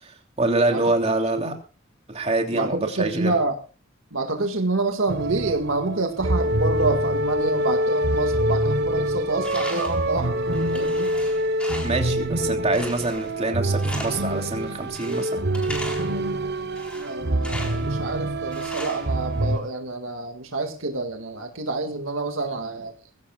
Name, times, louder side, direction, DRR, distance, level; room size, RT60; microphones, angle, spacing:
voice 1, 0.0-1.5 2.1-3.4 11.8-15.4, right 2 dB, 30° right, 2 dB, 3.2 m, -25 dB
voice 2, 2.5-3.5 4.1-10.3 10.7-11.1 17.0-22.9, right 2 dB, 75° right, 5 dB, 2.0 m, -27 dB
sound 1, 5.1-19.6, right 1 dB, 55° right, 1.0 m, -25 dB
Tools, 9.4-10.1 10.5-12.1 12.7-13.4 13.8-14.4 14.9-16.2 16.7-17.9 18.5-19.6, equal, 5° left, 4.3 m, -38 dB
21.5 x 16.5 x 2.4 m, 0.34 s
head